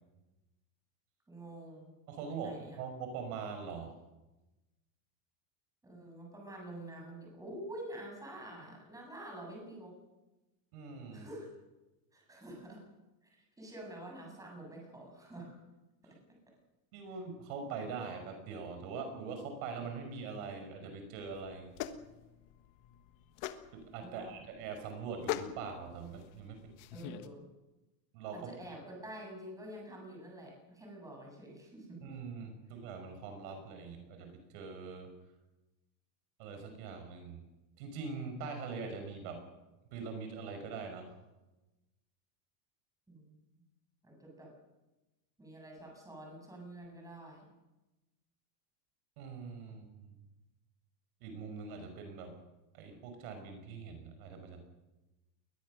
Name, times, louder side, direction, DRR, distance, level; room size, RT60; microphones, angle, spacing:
voice 1, 1.3-1.9 2.3-2.8 5.8-9.9 11.1-11.5 12.1-12.8 13.3-15.5 24.0-24.3 26.9-27.4 28.3-32.0 43.1-43.4 44.0-44.5 45.4-47.5, right 1 dB, 5° right, 0 dB, 7.3 m, -47 dB
voice 2, 2.1-3.9 10.7-11.3 16.0-16.1 16.9-21.7 23.7-26.6 28.1-28.5 32.0-35.1 36.4-37.4 37.8-39.4 39.9-41.1 49.2-50.2 51.2-52.3 52.7-54.6, right 5 dB, 65° right, 5 dB, 5.9 m, -43 dB
sound 1, 21.2-27.3, left 13 dB, 45° left, 1.6 m, -43 dB
21.5 x 20.5 x 6.6 m, 1.0 s
supercardioid pair, 165°, 47 cm